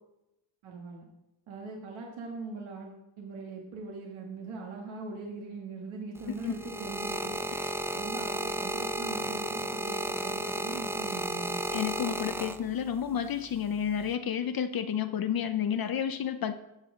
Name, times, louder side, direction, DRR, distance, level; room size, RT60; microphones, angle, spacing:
voice 1, 0.6-1.1 1.5-7.4 7.9-11.6, right 3 dB, 80° right, 0 dB, 1.7 m, -41 dB
sound 1, 6.2-13.0 13.8-14.1, right 1 dB, 5° right, 0.4 m, -33 dB
voice 2, 11.7-16.5, left 8 dB, 50° left, 9 dB, 0.6 m, -31 dB
13.5 x 7.6 x 3.7 m, 0.92 s
cardioid pair, 95°, 47 cm